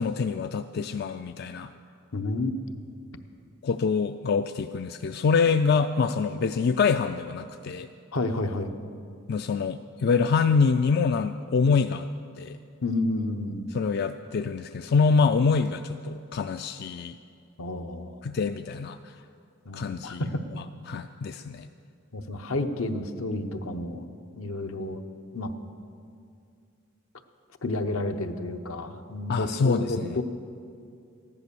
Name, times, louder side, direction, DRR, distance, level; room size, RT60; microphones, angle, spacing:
voice 1, 0.0-1.7 3.6-7.9 9.3-12.1 12.4-12.6 13.7-17.2 18.2-19.1 19.7-20.2 20.5-21.7 29.3-30.2, left 5 dB, 50° left, 9 dB, 0.3 m, -25 dB
voice 2, 2.1-2.5 8.1-8.7 12.8-13.7 17.6-18.1 19.7-20.4 22.1-24.0 24.4-25.0 25.3-25.5 27.6-30.2, left 2 dB, 75° left, 7 dB, 0.9 m, -30 dB
14.5 x 11.0 x 6.9 m, 2.4 s
head